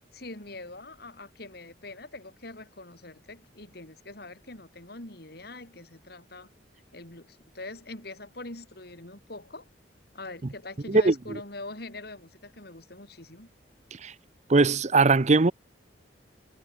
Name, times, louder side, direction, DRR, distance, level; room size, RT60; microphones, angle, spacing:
voice 1, 0.1-6.5 6.9-9.7 10.1-13.5, left 2 dB, 55° left, 3.9 m, -43 dB
voice 2, 10.9-11.4 14.0-14.1 14.5-15.5, right 3 dB, 40° right, 0.7 m, -20 dB
head